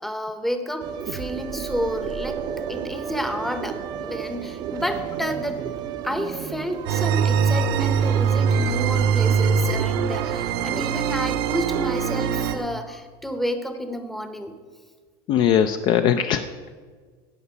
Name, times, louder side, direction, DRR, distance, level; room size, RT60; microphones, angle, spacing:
voice 1, 0.0-2.4 2.7-5.6 6.0-14.5, equal, ahead, 7 dB, 0.8 m, -30 dB
sound 1, 0.8-12.7, right 8 dB, 30° right, 0.6 m, -34 dB
sound 2, 6.9-12.6, right 7 dB, 70° right, 1.1 m, -22 dB
voice 2, 15.3-16.7, left 9 dB, 35° left, 9 dB, 0.4 m, -20 dB
16.5 x 5.5 x 6.9 m, 1.5 s
cardioid pair, 170°, 13 cm